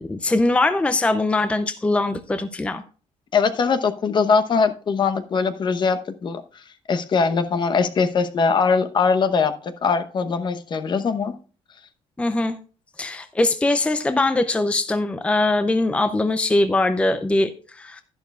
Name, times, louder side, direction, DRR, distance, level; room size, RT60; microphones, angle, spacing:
voice 1, 0.0-2.8 12.2-12.6 13.0-18.0, left 2 dB, 10° left, 10 dB, 0.5 m, -21 dB
voice 2, 3.3-6.6 6.9-11.4, left 5 dB, 40° left, 9 dB, 0.9 m, -21 dB
11.5 x 11.0 x 2.4 m, 0.38 s
cardioid pair, 135°, 12 cm